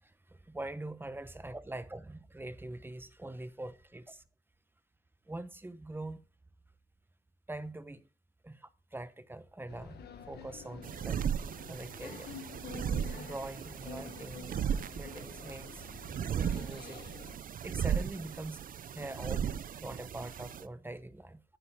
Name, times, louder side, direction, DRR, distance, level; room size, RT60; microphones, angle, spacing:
voice 1, 0.0-4.2 5.3-6.2 7.5-8.1 8.4-11.2 11.7-12.3 13.1-14.5 14.9-17.0 17.6-18.7 18.9-21.4, right 2 dB, 15° right, 0.9 m, -43 dB
sound 1, 9.7-17.4, left 5 dB, 80° left, 1.3 m, -49 dB
sound 2, 10.8-20.6, right 8 dB, 60° right, 0.5 m, -36 dB
9.1 x 8.4 x 3.6 m
cardioid pair, 75°, 17 cm